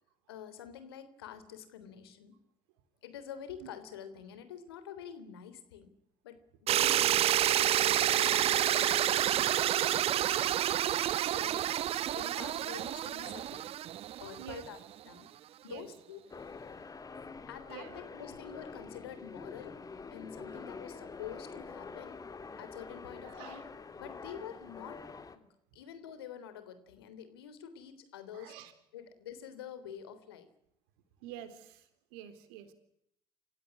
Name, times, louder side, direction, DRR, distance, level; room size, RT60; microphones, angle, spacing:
voice 1, 0.3-2.3 3.0-5.9 6.2-7.2 7.5-10.6 11.0-11.9 12.1-13.7 14.2-14.8 15.0-15.3 15.6-16.2 17.5-19.8 20.1-22.2 22.6-23.6 24.0-25.0 25.3-25.5 25.7-28.5 28.9-30.5, left 8 dB, 85° left, 12 dB, 3.5 m, -47 dB
sound 1, 6.7-14.7, right 12 dB, 55° right, 0.9 m, -29 dB
voice 2, 6.8-7.2 14.4-14.6 15.7-15.9 17.7-17.9 23.2-23.7 28.3-28.7 31.2-32.7, right 11 dB, 75° right, 11 dB, 3.8 m, -47 dB
sound 2, 16.3-25.4, left 4 dB, 30° left, 3.0 m, -46 dB
28.0 x 16.5 x 9.7 m, 0.76 s
hypercardioid pair, 65°, 12 cm